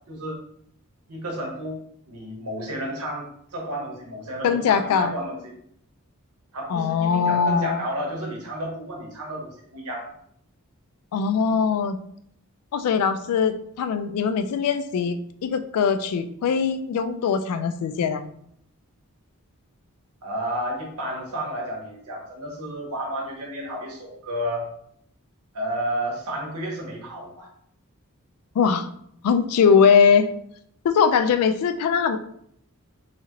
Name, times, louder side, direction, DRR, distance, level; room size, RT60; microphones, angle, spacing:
voice 1, 0.1-0.4 1.1-1.8 2.1-5.4 6.5-10.2 11.4-11.5 20.2-24.7 25.5-27.5, right 1 dB, 90° right, -1 dB, 0.9 m, -31 dB
voice 2, 4.4-5.1 6.7-7.8 11.1-12.0 12.7-15.2 15.4-18.2 28.6-28.9 29.2-30.3 30.8-32.2, left 6 dB, 80° left, 14 dB, 0.3 m, -21 dB
2.8 x 2.4 x 2.8 m, 0.69 s
head